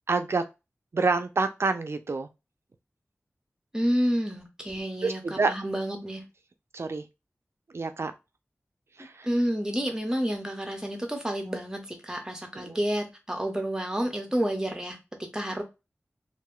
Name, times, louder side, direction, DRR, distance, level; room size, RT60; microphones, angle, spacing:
voice 1, 0.1-0.5 0.9-2.3 5.0-5.5 6.7-7.0 7.7-8.1 9.0-9.3 12.5-12.8, right 3 dB, 60° right, 0.4 m, -27 dB
voice 2, 3.7-6.2 9.2-15.6, equal, 15° right, 0.8 m, -29 dB
2.5 x 2.2 x 3.6 m
wide cardioid pair, 70°, 5 cm